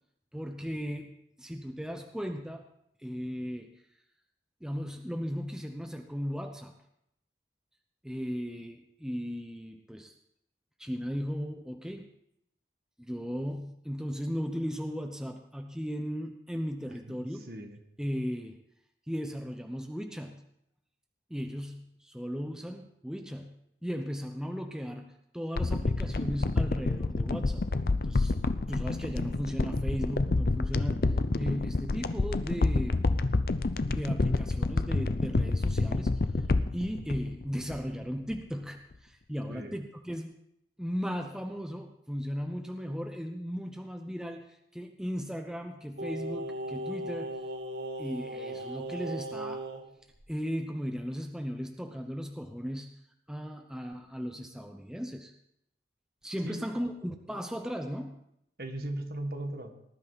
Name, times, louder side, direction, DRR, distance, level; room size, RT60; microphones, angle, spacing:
voice 1, 0.3-2.7 3.0-3.7 4.6-6.7 8.0-10.1 10.8-12.1 13.0-17.4 18.0-18.6 19.1-20.4 21.3-23.5 23.8-27.6 28.0-28.3 28.7-33.1 33.9-36.1 36.4-36.5 36.7-40.4 40.8-47.4 48.0-49.6 50.3-52.9 53.3-55.3 56.2-58.2, equal, 5° right, 4 dB, 0.7 m, -36 dB
voice 2, 16.8-17.8 39.5-39.8 56.4-56.6 58.6-59.7, right 1 dB, 55° right, 5 dB, 1.6 m, -38 dB
sound 1, 25.6-38.0 38.3-38.4, left 3 dB, 55° left, 0.6 m, -28 dB
Singing, 46.0-49.8 50.1-50.3, right 1 dB, 85° right, 2.4 m, -37 dB
19.0 x 11.0 x 4.1 m, 0.77 s
head